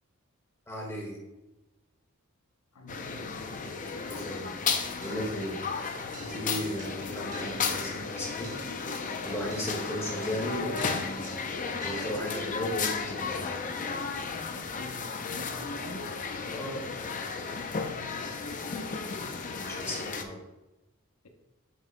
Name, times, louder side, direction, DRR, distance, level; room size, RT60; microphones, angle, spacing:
voice 1, 0.7-1.2 4.0-4.5 5.0-5.5 6.2-8.5 9.2-11.3 11.8-13.6 16.5-16.8 19.5-20.4, equal, 15° left, -2 dB, 1.7 m, -36 dB
voice 2, 2.7-3.4 6.5-6.8 14.5-16.1 17.9-18.5, equal, 80° left, 4 dB, 0.8 m, -44 dB
sound 1, 2.9-20.2, left 5 dB, 35° left, 0.6 m, -34 dB
sound 2, 5.0-12.5, right 3 dB, 35° right, 1.0 m, -50 dB
9.0 x 6.1 x 2.2 m, 1.0 s
head